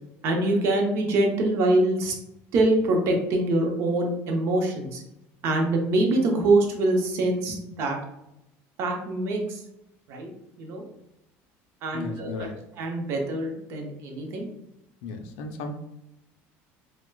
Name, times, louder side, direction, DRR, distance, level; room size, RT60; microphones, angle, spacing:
voice 1, 0.2-2.1 2.5-5.0 5.4-8.0 8.8-9.6 10.1-10.3 10.6-10.8 11.8-12.5 12.8-14.5, right 2 dB, 50° right, 1 dB, 0.6 m, -24 dB
voice 2, 11.9-12.7 15.0-15.8, left 3 dB, 90° left, 6 dB, 0.4 m, -35 dB
4.4 x 2.1 x 2.2 m, 0.86 s
cardioid pair, 165°, 6 cm